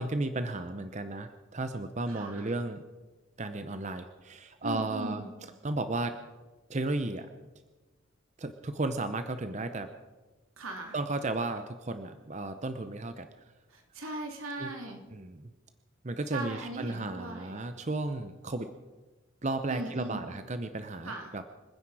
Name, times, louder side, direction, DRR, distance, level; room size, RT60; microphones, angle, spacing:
voice 1, 0.0-2.8 3.4-5.2 5.6-6.2 6.7-7.3 8.4-9.9 10.9-13.3 14.6-14.7 15.1-15.5 16.0-18.7 19.4-21.4, right 2 dB, 35° right, 9 dB, 0.7 m, -34 dB
voice 2, 2.1-2.5 4.6-5.3 10.6-11.0 13.7-15.0 16.3-17.6 19.7-20.3 21.0-21.3, right 2 dB, 85° right, 2 dB, 2.9 m, -39 dB
27.0 x 10.0 x 4.8 m, 1.2 s
head